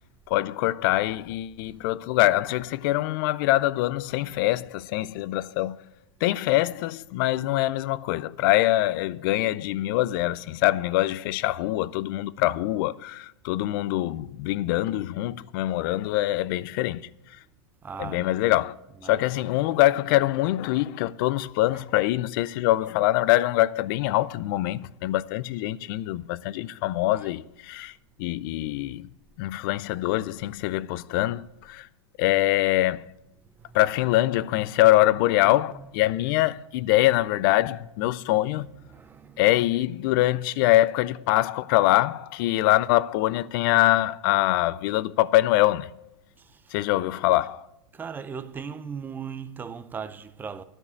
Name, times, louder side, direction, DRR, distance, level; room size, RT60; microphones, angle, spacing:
voice 1, 0.3-5.8 6.2-17.1 18.0-18.8 19.0-27.9 28.2-29.1 29.4-31.9 32.2-33.0 33.7-38.7 39.4-45.9 46.7-47.7, left 16 dB, 45° left, 0.4 m, -24 dB
voice 2, 17.8-18.5 19.0-19.4 33.6-33.8 35.7-35.9 38.0-38.1 38.5-39.5 46.4-46.7 47.9-50.6, right 6 dB, 10° right, 0.5 m, -38 dB
12.5 x 5.3 x 8.0 m
hypercardioid pair, 135°, 15 cm